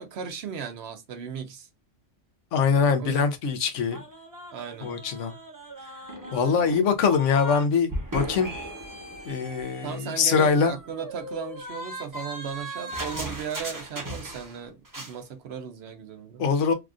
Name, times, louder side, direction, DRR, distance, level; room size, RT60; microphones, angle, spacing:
voice 1, 0.0-1.7 3.0-3.2 4.5-4.9 9.8-16.5, right 7 dB, 65° right, 0.8 m, -36 dB
voice 2, 2.5-4.0 4.8-5.3 6.3-8.5 9.3-10.7 16.4-16.7, left 5 dB, 85° left, 1.0 m, -23 dB
sound 1, 3.9-7.6 7.9-14.6 14.8-15.2, equal, 20° right, 0.7 m, -37 dB
3.4 x 2.3 x 2.4 m
omnidirectional pair, 1.2 m